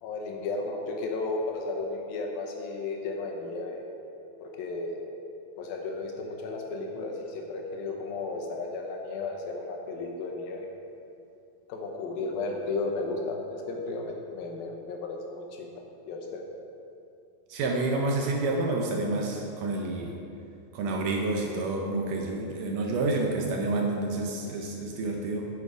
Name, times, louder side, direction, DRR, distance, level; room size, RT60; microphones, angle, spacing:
voice 1, 0.0-3.8 4.4-5.0 5.6-10.7 11.7-16.4, left 3 dB, 75° left, 1 dB, 2.7 m, -34 dB
voice 2, 17.5-20.2 20.7-25.5, right 2 dB, 75° right, 1 dB, 2.0 m, -29 dB
8.8 x 6.7 x 4.9 m, 2.6 s
omnidirectional pair, 4.3 m